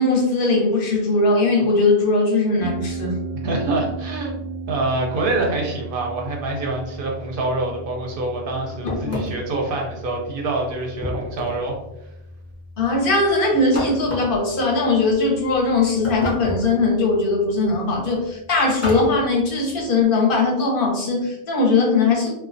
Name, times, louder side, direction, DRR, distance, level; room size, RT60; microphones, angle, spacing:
voice 1, 0.0-3.2 8.8-9.2 12.8-22.3, left 3 dB, 55° left, -1 dB, 0.7 m, -20 dB
Harp, 2.6-20.0, right 2 dB, 20° right, 0.6 m, -37 dB
voice 2, 3.4-11.8, right 2 dB, 60° right, 0 dB, 0.6 m, -26 dB
sound 1, 8.9-9.6 11.0-11.7 13.7-14.4 16.0-16.8 18.8-19.2, left 1 dB, 25° left, 0.3 m, -29 dB
2.3 x 2.2 x 2.5 m, 0.89 s
omnidirectional pair, 1.2 m